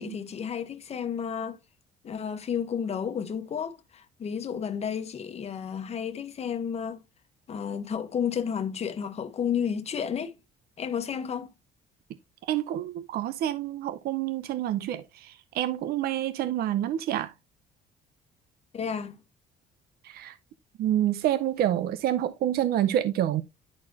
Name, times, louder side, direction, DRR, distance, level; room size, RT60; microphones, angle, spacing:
voice 1, 0.0-1.6 2.0-7.0 7.5-10.4 10.8-11.5 18.7-19.2, left 7 dB, 40° left, 1.1 m, -32 dB
voice 2, 12.4-17.3 20.0-20.4 20.8-23.4, right 12 dB, 65° right, 0.6 m, -28 dB
11.0 x 4.2 x 2.8 m
cardioid pair, 110°, 17 cm